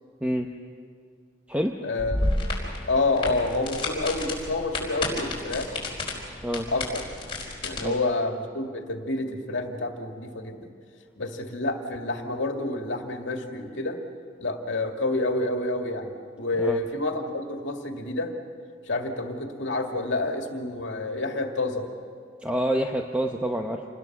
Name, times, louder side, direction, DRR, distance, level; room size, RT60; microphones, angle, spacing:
voice 1, 1.8-2.4 2.9-5.7 6.7-7.0 7.6-10.7 11.2-14.0 14.4-18.3 18.9-21.9, left 2 dB, 75° left, 3 dB, 2.2 m, -28 dB
sound 1, 2.0-7.8, left 2 dB, 30° left, 4.6 m, -31 dB
voice 2, 22.4-23.8, right 1 dB, 5° right, 2 dB, 0.8 m, -27 dB
27.5 x 20.5 x 6.1 m, 2.1 s
head